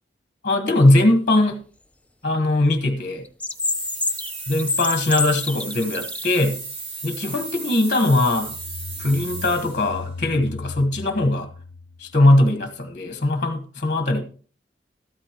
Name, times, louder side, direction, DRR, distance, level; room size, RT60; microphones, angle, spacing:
voice 1, 0.4-1.6 2.2-3.2 4.5-6.6 7.0-8.5 9.0-11.5 12.0-14.2, left 1 dB, 45° left, 1.3 m, -20 dB
sound 1, 3.2-6.4, left 3 dB, 10° left, 0.6 m, -26 dB
sound 2, 3.5-9.9, right 3 dB, 80° right, 4.6 m, -35 dB
sound 3, 8.2-12.7, left 4 dB, 80° left, 0.5 m, -38 dB
13.5 x 12.5 x 3.0 m
head